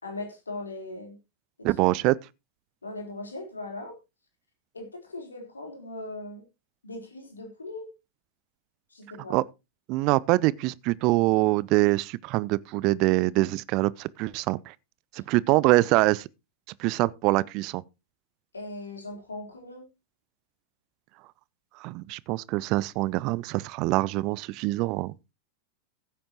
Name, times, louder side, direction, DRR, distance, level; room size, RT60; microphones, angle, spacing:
voice 1, 0.0-1.2 1.6-1.7 2.8-4.0 4.7-6.4 6.8-7.9 8.9-9.4 18.5-19.9, left 2 dB, 75° left, 3.7 m, -39 dB
voice 2, 1.6-2.1 9.3-9.4 9.9-14.7 15.1-16.3 16.8-17.8 21.8-25.1, right 20 dB, 40° right, 0.5 m, -24 dB
15.5 x 8.6 x 2.9 m
figure-of-eight pair, 90°, 0 cm